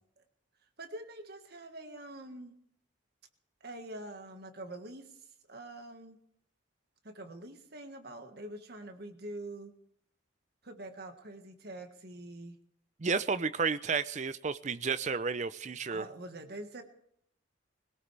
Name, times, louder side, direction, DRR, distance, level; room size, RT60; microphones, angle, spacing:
voice 1, 0.8-2.5 3.6-5.2 5.5-6.2 7.0-9.7 10.6-12.6 15.9-16.8, right 1 dB, 55° right, 6 dB, 1.6 m, -45 dB
voice 2, 13.0-16.0, right 5 dB, 35° right, 14 dB, 0.5 m, -32 dB
21.5 x 17.0 x 3.4 m, 0.70 s
head